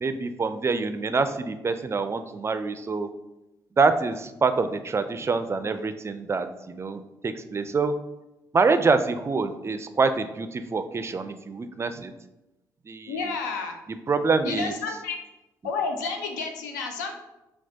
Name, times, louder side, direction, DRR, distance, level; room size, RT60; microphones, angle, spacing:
voice 1, 0.0-3.1 3.8-7.9 8.5-12.1 12.9-13.2 14.1-14.7, right 4 dB, 30° right, 10 dB, 0.4 m, -26 dB
voice 2, 13.1-13.8 14.4-15.2 15.6-17.1, left 4 dB, 80° left, 5 dB, 0.4 m, -30 dB
5.9 x 2.2 x 2.7 m, 0.96 s
hypercardioid pair, 40°, 9 cm